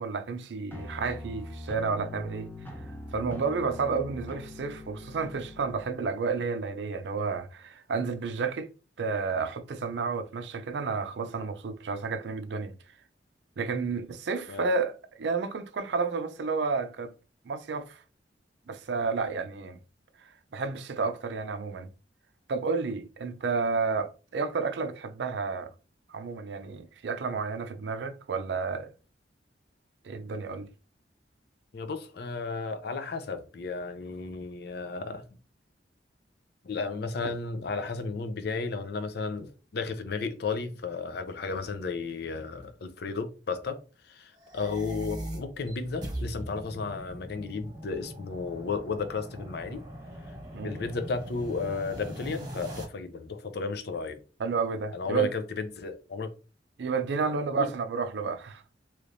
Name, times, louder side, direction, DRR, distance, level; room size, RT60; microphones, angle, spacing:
voice 1, 0.0-2.5 3.1-8.7 9.0-12.7 13.6-17.1 17.5-18.0 18.7-19.8 20.5-21.9 22.5-25.7 26.1-28.9 30.0-30.7 50.5-50.7 54.4-55.3 56.8-58.6, right 4 dB, 70° right, 0.4 m, -31 dB
sound 1, 0.7-5.9, left 2 dB, 10° left, 0.6 m, -42 dB
voice 2, 31.7-35.2 36.6-43.8 44.0-49.8 50.6-54.2 54.9-56.3 57.6-57.7, left 4 dB, 65° left, 0.5 m, -34 dB
sound 2, 44.3-52.8, equal, 25° right, 1.2 m, -41 dB
3.2 x 3.0 x 2.5 m
head